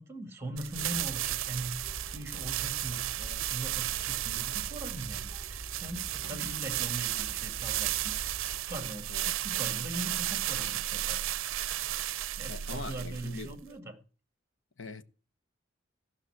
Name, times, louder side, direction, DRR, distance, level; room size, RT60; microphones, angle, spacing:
voice 1, 0.0-8.1 8.7-11.2 12.4-13.9, right 1 dB, 15° right, 2.1 m, -41 dB
sound 1, 0.6-13.7, right 13 dB, 85° right, 0.5 m, -34 dB
sound 2, 0.8-8.6, right 1 dB, 10° left, 4.5 m, -46 dB
voice 2, 12.5-13.5 14.8-15.0, left 3 dB, 70° left, 1.1 m, -42 dB
16.0 x 5.8 x 7.9 m
head